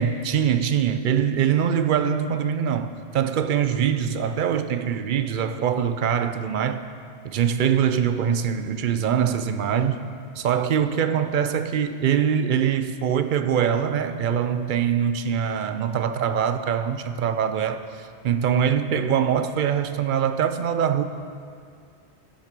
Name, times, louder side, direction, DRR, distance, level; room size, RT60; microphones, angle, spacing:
voice 1, 0.0-6.8 7.2-10.1 10.4-21.0, right 8 dB, 60° right, 0.6 m, -23 dB
11.5 x 6.2 x 6.1 m
omnidirectional pair, 1.2 m